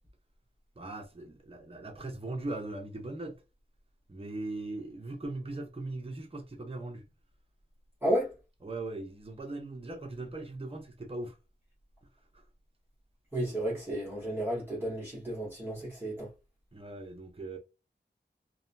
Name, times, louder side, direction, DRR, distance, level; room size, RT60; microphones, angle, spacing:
voice 1, 0.8-3.4 4.1-7.0 8.6-11.4 12.3-12.4 16.7-17.6, right 2 dB, 30° right, 0.7 m, -39 dB
voice 2, 8.0-8.3 13.3-16.3, right 1 dB, 10° right, 1.2 m, -32 dB
2.7 x 2.2 x 2.5 m
wide cardioid pair, 65°, 19 cm